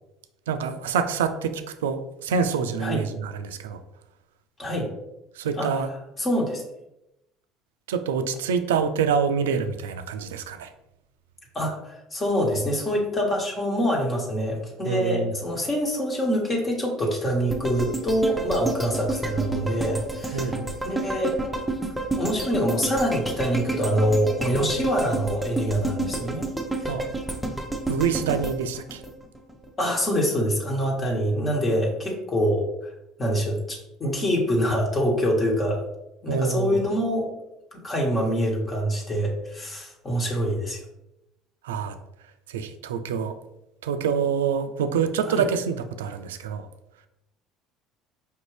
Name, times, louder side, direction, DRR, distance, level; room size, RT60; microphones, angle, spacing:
voice 1, 0.5-3.8 5.4-5.9 7.9-10.7 14.8-15.3 20.3-20.7 26.9-27.0 27.9-29.0 36.3-36.8 41.6-42.0 42.5-43.4 43.8-46.7, right 6 dB, 85° right, 10 dB, 0.3 m, -26 dB
voice 2, 6.2-6.6 11.5-20.6 20.8-21.3 22.2-26.5 26.8-26.9 29.8-32.7 33.2-35.8 36.2-37.3 37.7-40.8 45.2-45.5, equal, 30° left, -1 dB, 1.2 m, -25 dB
sound 1, 17.5-29.7 30.1-30.2, right 2 dB, 5° right, 0.7 m, -30 dB
4.9 x 2.6 x 3.2 m, 0.88 s
hypercardioid pair, 75°, 0 cm